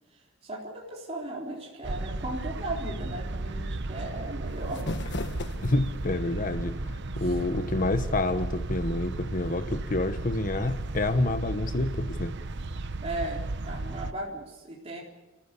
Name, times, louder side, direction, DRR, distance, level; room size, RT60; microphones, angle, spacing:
voice 1, 0.4-4.8 7.2-7.3 13.0-15.0, right 2 dB, 30° right, 4.0 m, -37 dB
sound 1, 1.8-14.1, right 2 dB, 60° right, 1.0 m, -34 dB
sound 2, 4.5-6.1, left 2 dB, 60° left, 1.4 m, -36 dB
voice 2, 5.6-12.4, left 2 dB, 45° left, 1.1 m, -28 dB
29.5 x 15.0 x 8.3 m
head